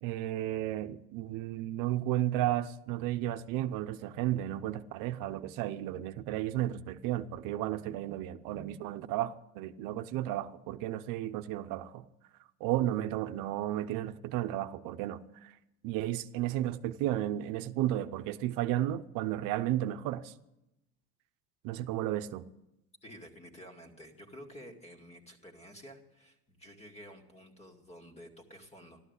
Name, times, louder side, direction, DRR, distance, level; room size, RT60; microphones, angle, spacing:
voice 1, 0.0-12.0 12.6-15.5 15.8-20.3 21.6-22.4, right 13 dB, 70° right, 0.8 m, -33 dB
voice 2, 23.0-29.0, equal, 20° left, 2.3 m, -51 dB
14.0 x 12.5 x 8.2 m
cardioid pair, 130°, 33 cm